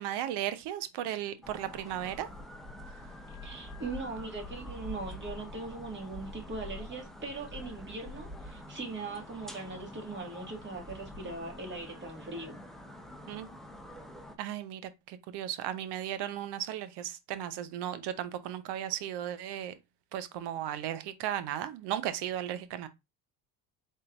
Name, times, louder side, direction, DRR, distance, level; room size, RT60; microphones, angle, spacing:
voice 1, 0.0-2.3 13.3-13.5 14.4-19.7 20.1-22.9, right 11 dB, 70° right, 0.8 m, -35 dB
sound 1, 1.4-14.4, left 1 dB, ahead, 0.7 m, -46 dB
voice 2, 3.3-12.6, right 3 dB, 25° right, 1.9 m, -40 dB
4.0 x 3.7 x 2.5 m
supercardioid pair, 85°, 42 cm